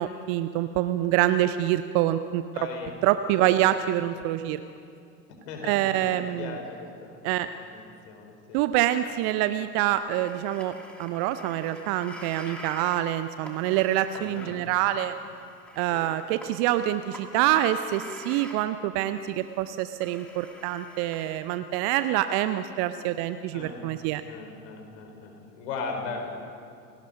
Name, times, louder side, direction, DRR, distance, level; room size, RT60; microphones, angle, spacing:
voice 1, 0.0-2.4 3.0-4.6 5.6-6.6 7.2-7.5 8.5-10.7 11.0-15.1 15.8-24.2, right 13 dB, 30° right, 12 dB, 0.5 m, -26 dB
voice 2, 2.5-3.5 5.3-7.2 7.7-8.6 14.2-14.6 15.9-16.0 23.5-23.8 24.3-26.3, left 4 dB, 50° left, 3 dB, 4.7 m, -38 dB
sound 1, 10.0-18.6 19.1-19.7 20.0-21.4, equal, ahead, 2.8 m, -47 dB
29.5 x 18.0 x 5.3 m, 2.4 s
figure-of-eight pair, 85°, 48 cm